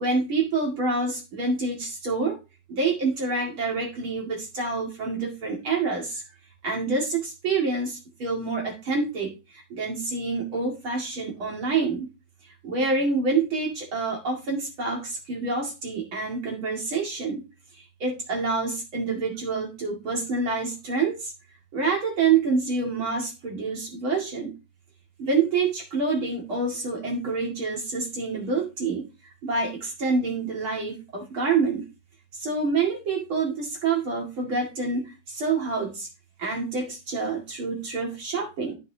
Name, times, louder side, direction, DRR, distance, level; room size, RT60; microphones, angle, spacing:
voice 1, 0.0-2.4 2.7-6.2 6.6-12.1 12.4-17.4 17.7-21.3 21.7-24.5 25.2-29.1 29.4-31.9 32.3-36.1 36.4-38.8, right 4 dB, 45° right, -1 dB, 2.9 m, -27 dB
14.0 x 6.0 x 2.8 m, 0.28 s
omnidirectional pair, 3.4 m